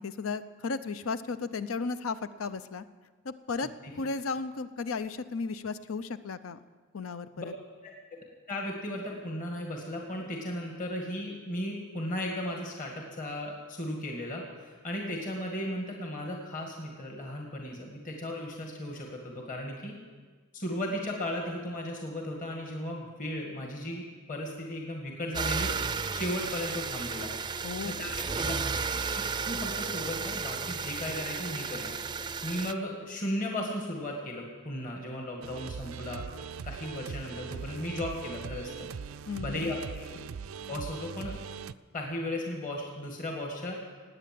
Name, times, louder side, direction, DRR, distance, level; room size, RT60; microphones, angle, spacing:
voice 1, 0.0-2.8 3.2-3.7 4.0-6.6 6.9-7.5 27.6-28.1 39.3-39.7, left 4 dB, 80° left, 13 dB, 0.6 m, -35 dB
voice 2, 8.5-20.0 20.5-25.7 26.1-27.3 27.8-28.5 29.2-31.9 32.4-36.2 36.6-38.9 39.4-40.1 40.7-41.4 41.9-43.8, left 1 dB, 40° left, 0 dB, 2.1 m, -36 dB
sound 1, 25.3-32.7, right 5 dB, 20° right, 0.4 m, -33 dB
sound 2, 35.4-41.7, right 6 dB, 90° right, 0.4 m, -41 dB
18.5 x 8.9 x 7.7 m, 1.5 s
head